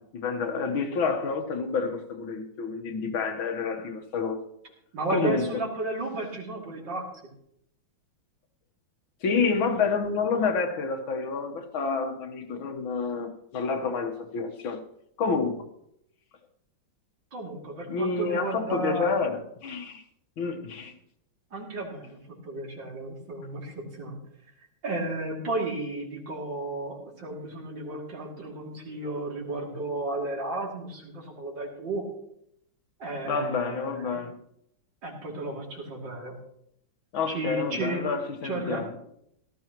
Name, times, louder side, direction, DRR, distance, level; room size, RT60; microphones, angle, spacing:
voice 1, 0.0-4.4 5.1-5.5 9.2-14.8 15.2-15.7 17.9-20.0 20.4-20.9 33.2-34.4 37.1-38.9, left 4 dB, 80° left, 5 dB, 2.1 m, -28 dB
voice 2, 4.9-7.1 17.3-19.1 21.5-22.2 22.4-24.2 24.8-32.0 33.0-34.3 35.0-36.3 37.3-38.0 38.4-38.8, right 2 dB, 65° right, -2 dB, 3.5 m, -33 dB
17.5 x 13.5 x 3.0 m, 0.73 s
omnidirectional pair, 2.2 m